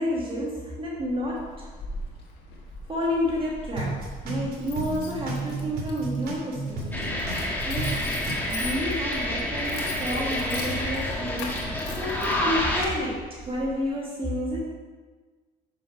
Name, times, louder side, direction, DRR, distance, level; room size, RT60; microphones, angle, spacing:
voice 1, 0.0-1.7 2.9-8.0 8.5-14.7, equal, 30° right, -3 dB, 1.4 m, -30 dB
Keys jangling, 0.8-13.9, left 2 dB, 90° left, 1.5 m, -41 dB
sound 1, 3.3-3.5 3.8-7.5 7.8-8.3, right 3 dB, 60° right, 2.6 m, -32 dB
sound 2, 6.9-12.8, left 1 dB, 10° left, 1.5 m, -28 dB
6.4 x 6.4 x 5.0 m, 1.4 s
cardioid pair, 110°, 17 cm